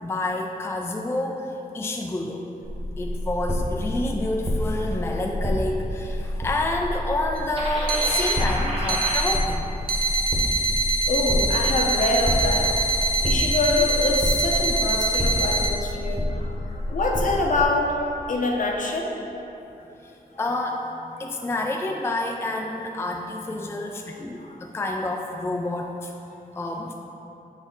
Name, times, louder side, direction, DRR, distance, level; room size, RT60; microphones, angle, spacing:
voice 1, 0.0-2.5 3.0-9.6 13.3-13.4 20.0-20.1 20.4-20.8 21.2-26.1 26.6-26.9, left 2 dB, 15° left, 1 dB, 0.4 m, -28 dB
sound 1, 2.6-17.7, left 1 dB, 15° right, 1.1 m, -28 dB
sound 2, 7.4-7.5 7.9-8.4 8.9-9.4 9.9-15.7, right 2 dB, 65° right, 0.8 m, -24 dB
sound 3, 7.5-9.2, right 1 dB, 35° right, 1.3 m, -31 dB
voice 2, 11.1-12.7 13.2-19.1 21.3-21.4 24.4-24.6, left 2 dB, 55° left, 0 dB, 0.8 m, -25 dB
6.9 x 4.2 x 3.8 m, 2.9 s
wide cardioid pair, 105°, 16 cm